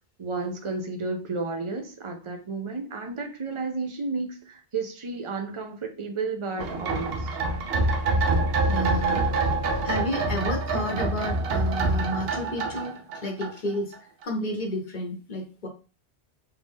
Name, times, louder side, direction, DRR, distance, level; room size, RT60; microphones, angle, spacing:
voice 1, 0.2-7.3, right 3 dB, 35° right, 4 dB, 0.6 m, -32 dB
sound 1, 6.6-14.0 14.2-14.3, right 3 dB, 60° right, 0.9 m, -26 dB
voice 2, 8.6-13.9 14.2-15.7, left 1 dB, 45° left, 2 dB, 0.9 m, -31 dB
3.3 x 2.6 x 3.5 m, 0.35 s
omnidirectional pair, 1.2 m